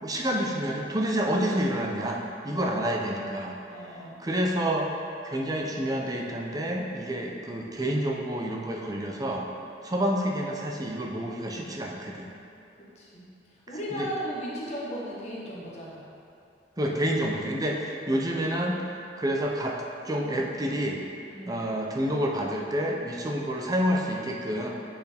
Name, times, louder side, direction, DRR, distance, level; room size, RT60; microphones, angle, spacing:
voice 1, 0.0-3.6 4.2-4.9 5.2-9.5 9.8-12.3 13.9-14.1 16.8-18.8 19.2-19.8 20.0-21.0 21.5-24.7, equal, 20° right, 0 dB, 0.6 m, -28 dB
voice 2, 3.7-4.2 12.9-13.3 13.7-16.0 21.3-21.6, equal, 40° left, -6 dB, 1.2 m, -36 dB
8.1 x 4.5 x 3.4 m, 2.7 s
head